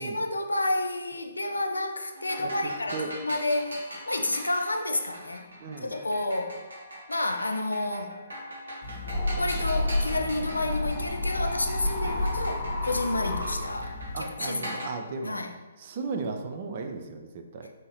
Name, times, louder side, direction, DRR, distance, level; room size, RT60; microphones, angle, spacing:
voice 1, 0.0-5.5 5.8-6.6 7.1-8.1 9.4-13.9 14.4-14.9 15.2-15.5, left 2 dB, 75° left, 5 dB, 0.4 m, -30 dB
sound 1, 2.1-14.9, equal, 70° right, 1.2 m, -42 dB
voice 2, 2.4-3.1 5.6-6.0 14.1-15.4 15.8-17.7, right 4 dB, 40° right, 4 dB, 0.4 m, -36 dB
sound 2, 8.8-14.2, left 2 dB, 45° left, 0.8 m, -30 dB
4.2 x 2.7 x 3.0 m, 1.2 s
figure-of-eight pair, 130°, 0 cm